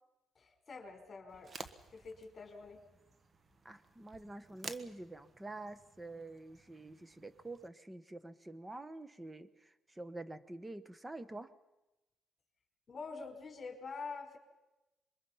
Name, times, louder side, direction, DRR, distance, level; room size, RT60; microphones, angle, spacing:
voice 1, 0.3-1.5 1.9-2.8 12.9-14.4, left 4 dB, 40° left, 4 dB, 4.6 m, -46 dB
sound 1, 1.3-7.7, right 4 dB, 40° right, 1.4 m, -53 dB
voice 2, 3.6-11.5, right 2 dB, 15° right, 13 dB, 1.3 m, -47 dB
26.5 x 22.5 x 5.8 m, 1.0 s
cardioid pair, 90°, 0 cm